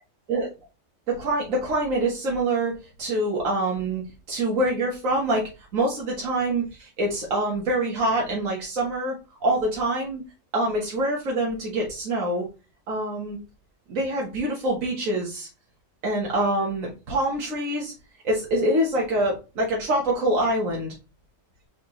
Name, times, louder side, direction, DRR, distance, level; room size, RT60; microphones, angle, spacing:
voice 1, 1.1-2.7 3.0-4.0 4.3-5.4 5.7-9.1 9.4-10.2 10.5-12.4 12.9-13.4 13.9-15.5 16.0-17.9 18.2-20.9, right 1 dB, 85° right, -2 dB, 1.6 m, -25 dB
4.2 x 4.1 x 3.0 m, 0.30 s
omnidirectional pair, 1.4 m